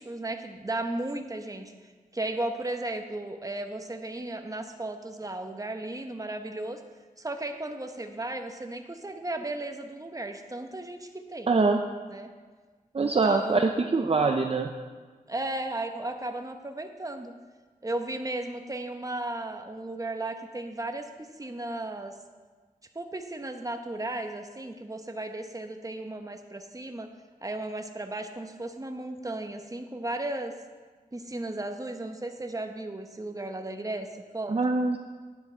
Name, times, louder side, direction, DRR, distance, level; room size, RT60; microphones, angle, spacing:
voice 1, 0.0-6.8 7.2-11.5 12.1-12.3 13.0-13.7 15.3-17.3 17.8-22.1 22.9-27.1 27.4-30.5 31.1-34.6, right 2 dB, 25° right, 6 dB, 1.0 m, -35 dB
voice 2, 11.5-11.8 12.9-14.7 34.5-35.0, right 3 dB, 40° right, 4 dB, 0.6 m, -24 dB
10.5 x 9.8 x 4.5 m, 1.4 s
wide cardioid pair, 65°, 15 cm